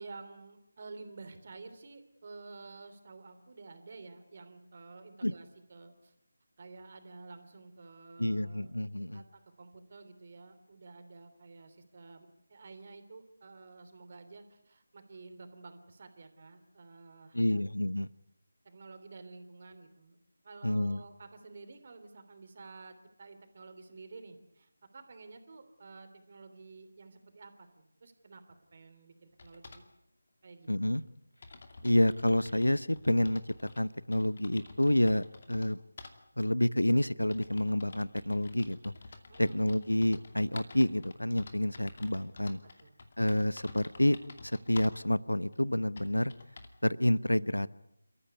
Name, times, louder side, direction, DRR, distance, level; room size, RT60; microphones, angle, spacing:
voice 1, 0.0-6.1 6.6-8.7 9.0-17.6 18.6-20.2 20.4-28.4 28.7-29.8 30.4-30.7 39.3-39.7 42.5-43.0, right 3 dB, 40° right, 8 dB, 3.2 m, -51 dB
voice 2, 8.2-9.2 17.3-18.1 20.6-21.0 30.7-31.0 31.8-35.8 36.4-38.9 39.4-42.6 43.2-44.2 44.4-46.3 46.8-47.7, left 1 dB, 85° left, 19 dB, 0.9 m, -28 dB
sound 1, 29.4-29.9 30.8-30.9 31.1-31.2 31.4-33.8 34.1-35.7 36.0-36.2 36.9-45.0 45.5-45.6 46.0-46.8, left 3 dB, 40° left, 2.5 m, -50 dB
29.5 x 14.5 x 9.7 m, 0.79 s
figure-of-eight pair, 160°, 0 cm